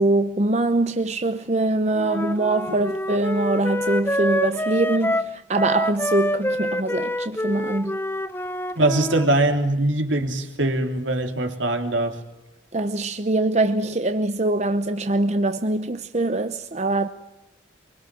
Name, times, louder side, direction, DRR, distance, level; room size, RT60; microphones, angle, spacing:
voice 1, 0.0-8.0 12.7-17.1, right 2 dB, 35° right, 0.8 m, -23 dB
Wind instrument woodwind instrument, 2.0-9.3, equal, 10° left, 0.8 m, -26 dB
voice 2, 8.8-12.2, right 2 dB, 75° right, 3.2 m, -22 dB
24.0 x 24.0 x 7.6 m
head